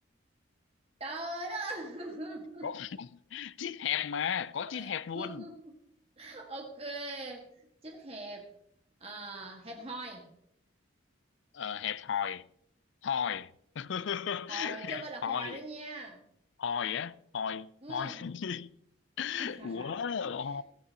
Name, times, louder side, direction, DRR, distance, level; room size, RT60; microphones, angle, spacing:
voice 1, 1.0-2.7 4.7-4.9 5.1-5.7 6.2-8.5 9.0-10.3 14.5-16.2 17.8-18.2 19.4-20.0 20.2-20.6, right 2 dB, 30° right, 1.7 m, -41 dB
voice 2, 2.6-5.5 11.5-12.5 13.0-13.5 13.8-15.6 16.6-18.7 19.2-20.6, left 7 dB, 70° left, 0.4 m, -35 dB
14.5 x 13.5 x 2.9 m
head